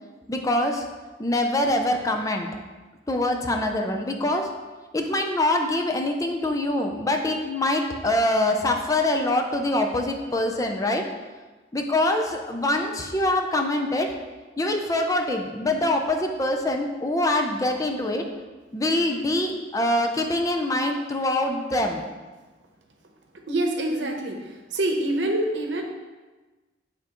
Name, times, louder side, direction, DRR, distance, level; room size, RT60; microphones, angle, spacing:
voice 1, 0.3-0.9 1.2-2.5 3.1-4.5 4.9-11.0 11.7-14.1 14.6-18.2 18.7-22.0, left 1 dB, 20° left, 3 dB, 0.5 m, -24 dB
voice 2, 23.5-25.8, right 1 dB, 80° right, 2 dB, 0.8 m, -26 dB
8.9 x 3.6 x 3.0 m, 1.2 s
head